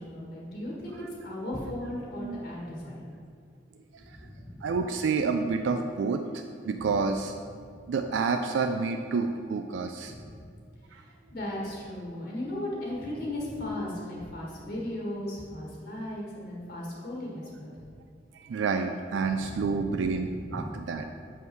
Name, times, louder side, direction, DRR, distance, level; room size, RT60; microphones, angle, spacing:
voice 1, 0.0-3.1 4.0-4.8 6.8-7.0 7.7-7.8 10.0-10.5 10.9-17.7 19.2-20.7, left 1 dB, 60° left, -4 dB, 1.6 m, -37 dB
voice 2, 4.6-7.3 7.9-10.1 10.9-11.0 18.5-21.0, right 4 dB, 85° right, 6 dB, 0.3 m, -29 dB
6.3 x 5.5 x 4.6 m, 2.3 s
head